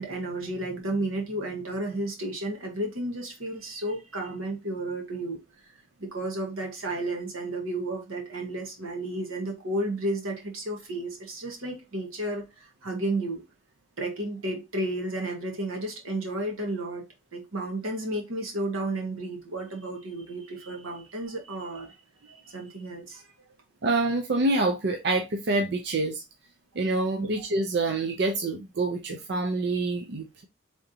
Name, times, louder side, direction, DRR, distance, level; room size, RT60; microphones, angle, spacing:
voice 1, 0.0-5.4 6.0-13.4 14.0-17.0 17.3-22.0 22.3-23.2 27.2-27.3, right 1 dB, 85° right, 1.3 m, -32 dB
voice 2, 23.8-26.2 26.8-30.4, right 2 dB, 50° right, 0.5 m, -26 dB
3.8 x 3.4 x 2.7 m
head